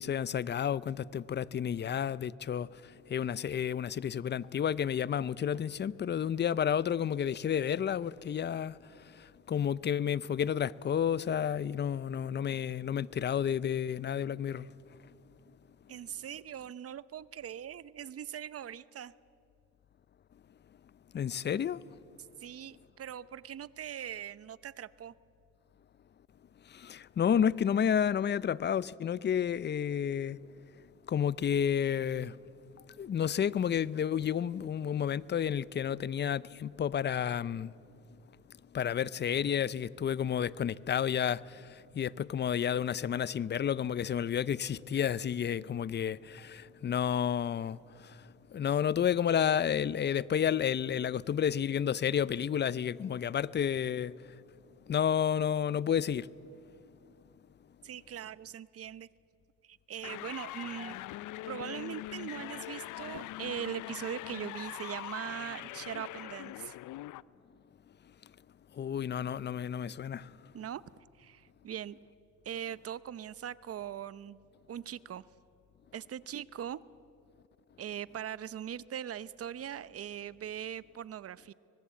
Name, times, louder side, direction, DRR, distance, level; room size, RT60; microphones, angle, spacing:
voice 1, 0.0-14.7 21.1-21.8 26.7-30.4 31.1-32.4 32.7-37.7 38.7-54.4 54.9-56.3 68.7-70.5, left 8 dB, 35° left, 0.6 m, -31 dB
voice 2, 15.9-19.1 22.4-25.1 57.8-59.1 59.6-61.0 61.5-66.8 70.5-70.8 71.2-72.0 72.4-74.4 74.7-75.2 75.9-76.8 77.8-81.5, right 9 dB, 50° right, 0.8 m, -41 dB
sound 1, 60.0-67.2, left 15 dB, 80° left, 0.5 m, -42 dB
25.0 x 19.5 x 8.4 m
cardioid pair, 90°, 30 cm